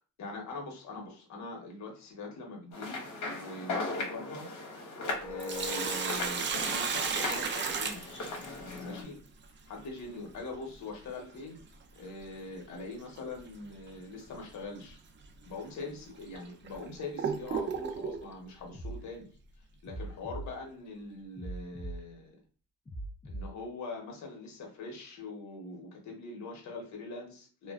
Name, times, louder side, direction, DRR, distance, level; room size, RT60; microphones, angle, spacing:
voice 1, 0.2-4.5 5.1-8.3 8.8-9.2 9.7-11.6 12.0-15.0 15.4-19.3 19.8-22.3 23.2-27.7, left 3 dB, 65° left, 0 dB, 1.0 m, -42 dB
sound 1, 2.7-9.0, left 2 dB, 85° left, 0.8 m, -38 dB
Sink (filling or washing), 5.2-8.8 11.2-11.3 13.2-13.4 13.9-14.0 14.8-14.9 15.6-15.7 16.3-18.2, right 6 dB, 40° right, 0.4 m, -33 dB
sound 2, 18.7-18.9 19.8-20.4 21.3-21.9 22.8-23.4, right 2 dB, 20° left, 0.8 m, -40 dB
2.4 x 2.1 x 2.4 m, 0.39 s
cardioid pair, 90°, 30 cm